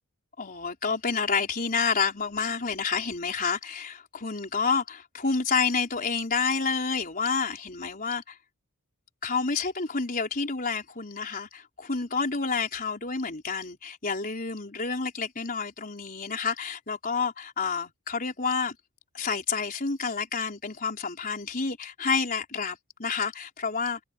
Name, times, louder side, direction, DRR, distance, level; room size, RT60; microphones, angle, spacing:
voice 1, 0.4-8.4 9.2-18.8 19.1-24.0, left 5 dB, 40° left, 4.4 m, -29 dB
head